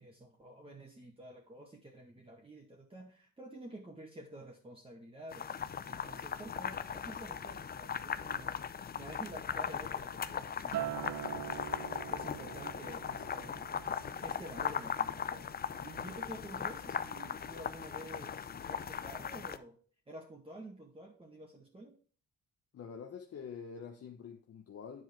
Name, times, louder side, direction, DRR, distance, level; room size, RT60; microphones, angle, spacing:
voice 1, 0.0-11.8 12.1-13.7 14.2-19.8 20.1-21.9, right 1 dB, 20° right, 1.9 m, -50 dB
sound 1, 5.3-19.6, left 7 dB, 30° left, 0.5 m, -39 dB
Acoustic guitar, 10.7-15.2 15.5-15.9, right 12 dB, 65° right, 0.7 m, -43 dB
voice 2, 22.7-25.0, left 6 dB, 50° left, 1.0 m, -46 dB
9.7 x 4.8 x 4.7 m
cardioid pair, 90°, 30 cm